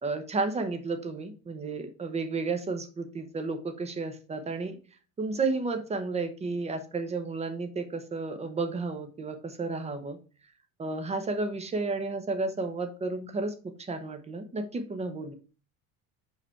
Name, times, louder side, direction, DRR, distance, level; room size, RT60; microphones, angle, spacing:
voice 1, 0.0-4.8 5.2-10.2 10.8-15.3, right 3 dB, 20° right, 8 dB, 0.9 m, -32 dB
5.1 x 5.1 x 4.5 m, 0.37 s
cardioid pair, 140°, 36 cm